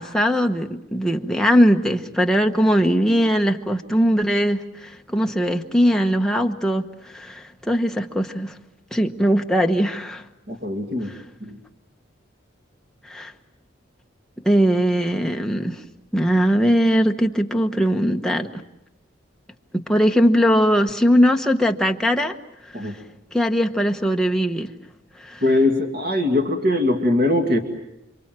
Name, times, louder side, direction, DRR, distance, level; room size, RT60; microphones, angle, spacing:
voice 1, 0.0-8.6 8.9-10.2 13.1-13.3 14.4-15.8 16.1-18.6 19.7-22.3 22.8-22.9 23.3-24.7 25.2-25.4, equal, 5° left, 1.1 m, -20 dB
voice 2, 10.5-11.1 11.4-11.6 22.7-22.9 25.4-27.6, left 2 dB, 45° right, 2.3 m, -21 dB
28.5 x 25.5 x 7.6 m
head